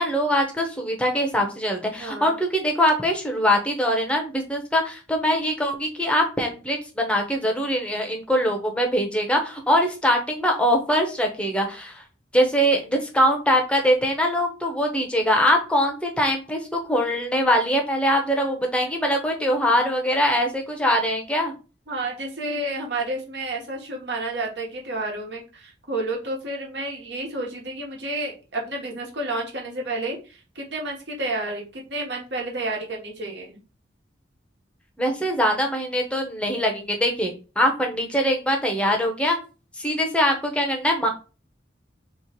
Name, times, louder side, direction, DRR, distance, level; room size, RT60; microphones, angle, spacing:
voice 1, 0.0-12.0 12.3-21.5 35.0-39.4 39.8-41.1, equal, 5° left, 2 dB, 0.8 m, -22 dB
voice 2, 2.0-2.4 21.9-33.6, right 2 dB, 70° right, 0 dB, 1.3 m, -30 dB
3.1 x 3.1 x 4.4 m, 0.33 s
head